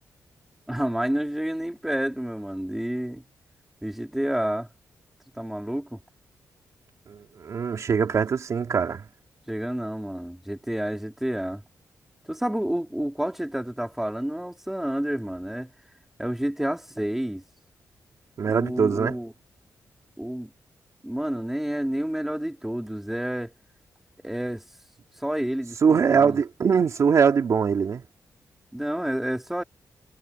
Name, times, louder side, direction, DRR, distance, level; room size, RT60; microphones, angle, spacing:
voice 1, 0.7-3.2 3.8-4.7 5.3-6.0 9.5-11.6 12.3-15.7 16.2-17.4 18.4-19.3 20.2-20.5 21.0-23.5 24.2-24.6 25.2-26.4 28.7-29.6, right 1 dB, 5° right, 2.8 m, -29 dB
voice 2, 7.1-9.0 18.4-19.2 25.8-28.0, right 6 dB, 60° right, 3.0 m, -22 dB
cardioid pair, 110°, 6 cm